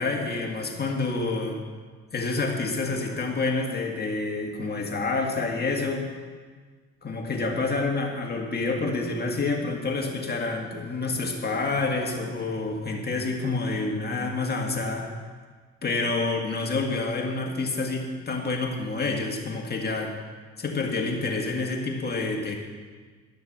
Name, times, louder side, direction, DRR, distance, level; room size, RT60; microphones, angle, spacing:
voice 1, 0.0-1.6 2.1-6.1 7.0-15.1 15.8-20.1 20.6-22.6, left 3 dB, 30° left, 0 dB, 1.9 m, -28 dB
11.5 x 6.7 x 6.7 m, 1.5 s
cardioid pair, 90°, 30 cm